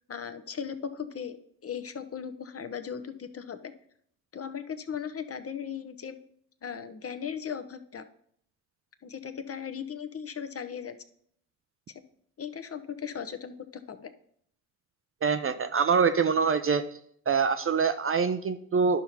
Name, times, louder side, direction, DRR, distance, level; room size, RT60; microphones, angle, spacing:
voice 1, 0.1-1.4 1.6-3.7 4.3-6.2 6.6-8.1 9.0-11.0 12.4-14.1, left 7 dB, 30° left, 9 dB, 0.7 m, -37 dB
voice 2, 15.2-16.8 17.3-19.0, right 6 dB, 30° right, 9 dB, 0.5 m, -24 dB
12.0 x 5.6 x 2.9 m, 0.66 s
figure-of-eight pair, 40°, 49 cm